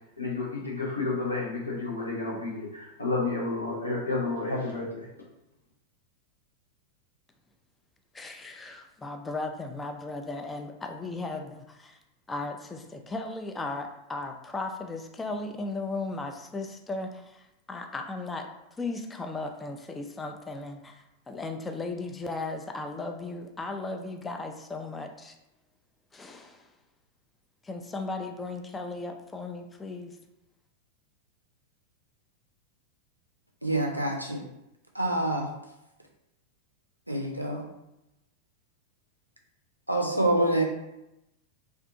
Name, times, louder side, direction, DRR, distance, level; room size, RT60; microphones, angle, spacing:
voice 1, 0.2-5.1, left 3 dB, 80° left, -5 dB, 0.7 m, -31 dB
voice 2, 8.1-12.0 12.3-18.5 18.8-25.4 26.1-26.7 27.6-30.2, left 3 dB, 15° left, 4 dB, 0.3 m, -36 dB
voice 3, 33.6-34.4 34.9-35.5 37.1-37.6 39.9-40.7, right 1 dB, 90° right, 1 dB, 0.4 m, -26 dB
2.5 x 2.4 x 2.6 m, 0.89 s
figure-of-eight pair, 90°, 0 cm